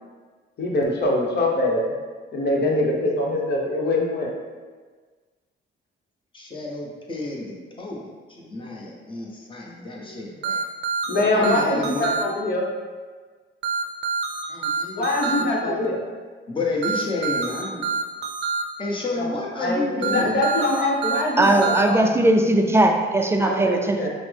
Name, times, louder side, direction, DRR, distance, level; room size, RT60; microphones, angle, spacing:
voice 1, 0.6-1.8 2.3-4.3 10.0-10.2 11.1-12.6 14.9-16.0 19.1-22.0 23.4-24.1, left 2 dB, 55° left, -1 dB, 1.0 m, -23 dB
voice 2, 6.3-10.6 11.1-12.1 14.5-15.8 16.5-17.9 18.8-20.4, left 2 dB, 25° left, -3 dB, 0.9 m, -31 dB
sound 1, 10.4-12.2 13.6-15.4 16.8-18.6 20.0-21.8, right 4 dB, 60° right, 0.5 m, -26 dB
voice 3, 21.4-24.1, right 1 dB, 15° right, 4 dB, 0.4 m, -19 dB
5.7 x 2.1 x 3.4 m, 1.5 s
cardioid pair, 90°, 20 cm